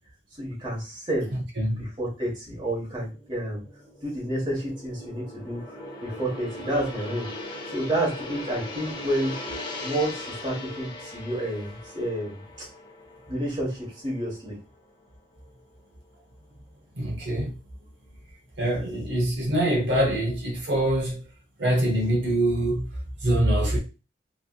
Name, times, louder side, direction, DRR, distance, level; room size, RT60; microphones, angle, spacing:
voice 1, 0.4-1.3 1.8-3.6 4.0-7.3 7.7-9.3 9.8-12.7 13.3-14.6, right 1 dB, 25° right, 1.3 m, -30 dB
Gong, 2.9-15.0 15.4-15.6, left 1 dB, 25° left, 0.6 m, -40 dB
voice 2, 17.0-17.5 18.6-21.2 21.6-22.8 23.2-23.8, right 1 dB, 70° right, 0.8 m, -24 dB
3.2 x 2.7 x 2.3 m
head